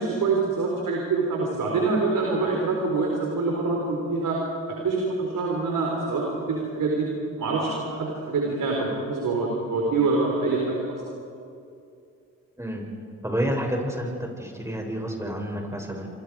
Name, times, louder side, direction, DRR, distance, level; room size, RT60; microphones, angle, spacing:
voice 1, 0.0-4.4 4.8-7.1 7.4-10.8, right 3 dB, 70° right, -1 dB, 4.2 m, -25 dB
voice 2, 13.2-16.1, equal, 10° right, 1 dB, 6.9 m, -29 dB
28.0 x 25.5 x 5.0 m, 2.5 s
supercardioid pair, 50°, 33 cm